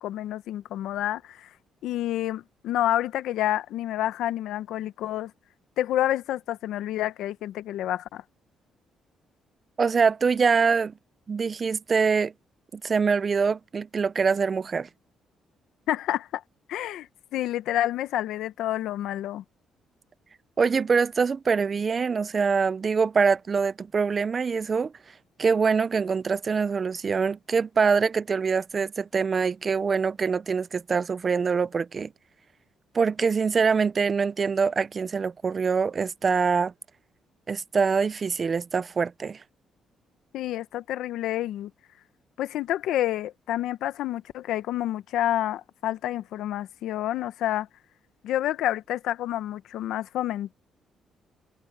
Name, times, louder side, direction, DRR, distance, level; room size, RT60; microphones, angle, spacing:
voice 1, 0.0-1.5 1.8-5.3 5.8-8.2 15.9-16.4 16.7-19.4 40.3-41.7 42.4-47.7 48.2-50.5, left 13 dB, 85° left, 0.8 m, -29 dB
voice 2, 9.8-10.9 11.3-12.3 12.7-14.9 20.6-24.9 25.4-32.1 32.9-36.7 37.5-39.4, right 5 dB, 40° right, 0.5 m, -24 dB
cardioid pair, 95°, 0 cm